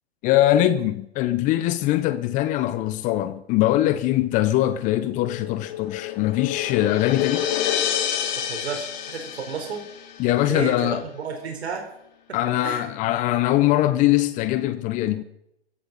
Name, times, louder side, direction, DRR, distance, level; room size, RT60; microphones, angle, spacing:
voice 1, 0.2-7.5 10.2-11.0 12.3-15.2, left 14 dB, 25° left, 0.6 m, -22 dB
sound 1, 5.1-10.3, left 10 dB, 45° left, 2.2 m, -28 dB
voice 2, 8.5-9.8 10.5-11.8 12.3-12.8, right 6 dB, 75° right, 4.0 m, -32 dB
23.0 x 16.0 x 4.0 m
hypercardioid pair, 130°, 33 cm